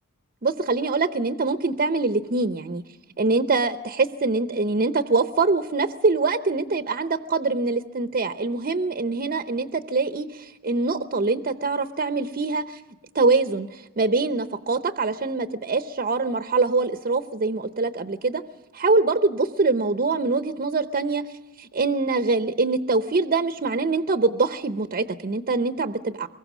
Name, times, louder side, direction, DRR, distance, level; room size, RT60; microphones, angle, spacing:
voice 1, 0.4-2.8 3.2-12.8 13.1-18.4 18.7-21.2 21.6-26.3, right 3 dB, 40° right, 9 dB, 0.7 m, -24 dB
23.5 x 21.5 x 6.1 m, 1.1 s
head